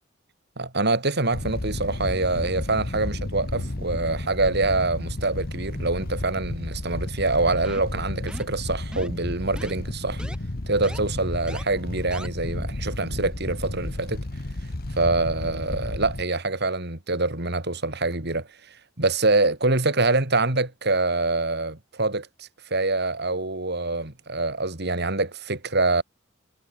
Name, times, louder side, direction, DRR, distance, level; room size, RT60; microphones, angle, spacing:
voice 1, 0.6-10.2 10.7-14.2 15.0-18.5 19.0-26.0, right 3 dB, 55° right, 3.7 m, -25 dB
sound 1, 1.3-16.2, left 1 dB, 50° left, 1.3 m, -32 dB
sound 2, 7.6-8.0 8.3-8.6 8.9-9.2 9.6-9.7 10.2-10.4 10.8-11.0 11.5-11.6 12.1-12.3, equal, 5° right, 4.8 m, -39 dB
head